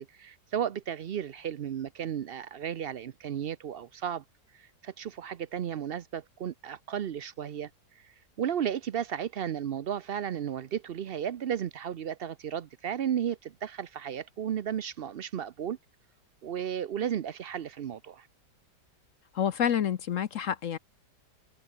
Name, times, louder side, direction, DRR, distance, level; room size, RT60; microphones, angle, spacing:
voice 1, 0.0-4.2 4.5-7.7 8.0-15.8 16.4-18.3, right 9 dB, 80° right, 0.5 m, -34 dB
voice 2, 19.3-20.8, left 9 dB, 55° left, 1.0 m, -28 dB
omnidirectional pair, 1.8 m